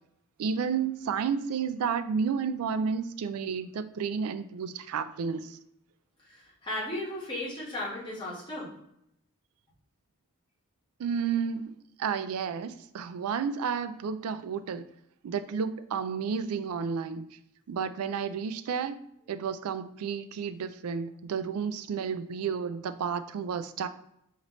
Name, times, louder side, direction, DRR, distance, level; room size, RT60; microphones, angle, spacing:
voice 1, 0.4-5.6 11.0-11.7 12.0-14.9 15.2-17.4 17.7-19.0 19.3-23.9, right 6 dB, 85° right, 0.3 m, -31 dB
voice 2, 6.2-8.7, left 1 dB, 20° left, 1.3 m, -36 dB
4.1 x 3.0 x 3.0 m
head